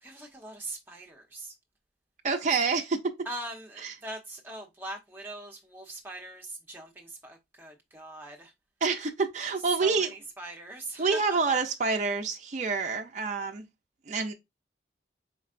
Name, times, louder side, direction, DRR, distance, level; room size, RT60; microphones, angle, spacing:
voice 1, 0.0-1.5 3.3-8.5 9.8-11.2, right 1 dB, 10° right, 0.8 m, -41 dB
voice 2, 2.2-3.1 3.8-3.9 8.8-10.1 11.0-13.6 14.1-14.3, right 4 dB, 40° right, 0.5 m, -27 dB
4.4 x 3.1 x 2.5 m
head